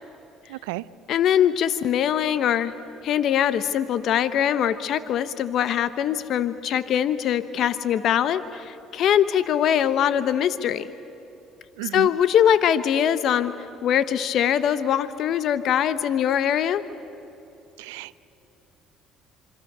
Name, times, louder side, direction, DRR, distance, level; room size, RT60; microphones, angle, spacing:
voice 1, 0.5-0.8 11.8-12.1 17.8-18.2, right 20 dB, 90° right, 18 dB, 0.5 m, -33 dB
voice 2, 1.1-2.7 3.0-10.9 11.9-16.8, left 9 dB, 60° left, 13 dB, 0.9 m, -22 dB
26.5 x 25.0 x 6.8 m, 2.9 s
supercardioid pair, 75°, 0 cm